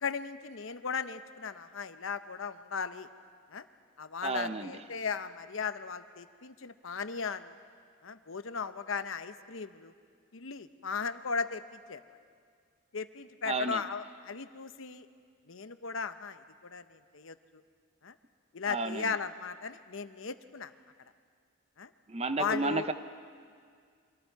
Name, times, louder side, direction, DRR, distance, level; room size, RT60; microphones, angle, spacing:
voice 1, 0.0-3.1 3.5-3.7 4.0-7.6 8.0-9.9 10.3-12.0 12.9-15.1 15.5-17.6 18.0-18.1 18.5-20.7 21.8-21.9 22.4-22.9, left 5 dB, 75° left, 11 dB, 0.8 m, -37 dB
voice 2, 4.2-4.7 13.4-13.8 18.7-19.1 22.1-22.9, right 3 dB, 30° right, 10 dB, 0.7 m, -32 dB
30.0 x 25.0 x 4.7 m, 2.1 s
head